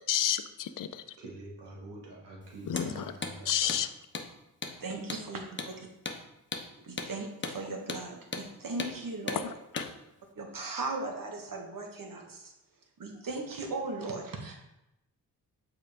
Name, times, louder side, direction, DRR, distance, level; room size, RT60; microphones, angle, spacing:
voice 1, 0.1-1.0 2.7-3.1 3.5-3.9 9.4-9.9, left 10 dB, 50° left, 11 dB, 0.6 m, -31 dB
voice 2, 1.2-3.7, right 2 dB, 75° right, -3 dB, 2.1 m, -46 dB
Hammer, 2.7-2.9 3.2-3.4 3.7-3.8 4.1-4.3 4.6-4.8 5.1-5.2 5.6-5.7 6.1-6.2 6.5-6.7 7.0-7.1 7.4-7.6 7.9-8.0 8.3-8.5 8.8-8.9 9.3-9.4 9.8-9.9, left 4 dB, 25° left, 1.0 m, -36 dB
voice 3, 4.8-5.9 6.8-9.4 10.3-12.5 13.0-14.6, right 3 dB, 50° right, 2 dB, 1.5 m, -38 dB
6.6 x 4.8 x 3.5 m, 0.89 s
supercardioid pair, 50°, 42 cm